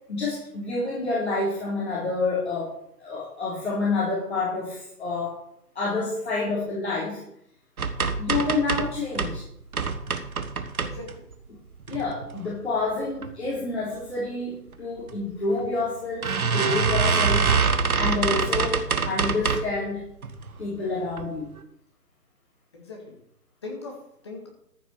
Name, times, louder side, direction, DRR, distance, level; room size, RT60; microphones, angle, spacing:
voice 1, 0.1-5.4 5.8-7.2 8.2-9.4 11.9-17.5 18.0-20.0 20.6-21.5, left 3 dB, 40° left, -7 dB, 4.0 m, -28 dB
sound 1, 7.8-9.4 9.7-11.3 11.8-12.4 12.9-13.3 13.6-13.7 14.0-14.1 15.1-15.2 15.6-15.7 16.2-19.8 20.2-20.7 21.1-21.3 21.6-21.7, right 5 dB, 60° right, 1.3 m, -25 dB
voice 2, 10.8-11.2 22.7-23.2 23.6-24.5, left 3 dB, 15° left, 0 dB, 1.7 m, -40 dB
14.0 x 6.0 x 6.7 m, 0.74 s
hypercardioid pair, 175°, 49 cm